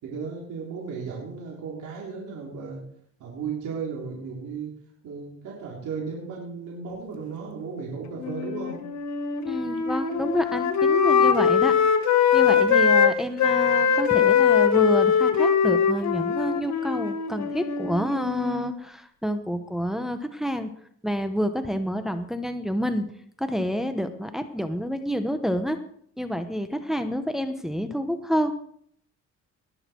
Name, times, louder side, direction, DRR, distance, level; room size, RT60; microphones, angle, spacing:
voice 1, 0.0-2.8 3.2-4.8 5.0-8.8, right 5 dB, 80° right, -3 dB, 3.8 m, -35 dB
Wind instrument woodwind instrument, 8.2-13.1 13.4-18.7, left 7 dB, 65° left, 1.5 m, -22 dB
voice 2, 9.4-11.7 12.3-20.7 21.0-23.1 23.4-25.8 26.2-28.5, equal, ahead, 7 dB, 1.1 m, -28 dB
20.0 x 6.7 x 4.6 m, 0.64 s
cardioid pair, 90°, 30 cm